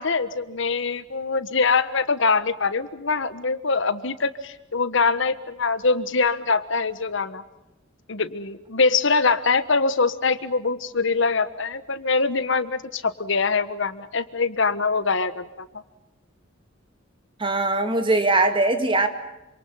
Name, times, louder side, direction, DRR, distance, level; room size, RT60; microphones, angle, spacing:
voice 1, 0.0-7.4 8.1-15.7, left 4 dB, 65° left, 13 dB, 1.4 m, -23 dB
voice 2, 17.4-19.1, right 2 dB, 25° right, 7 dB, 2.2 m, -21 dB
27.5 x 26.5 x 5.7 m, 0.98 s
head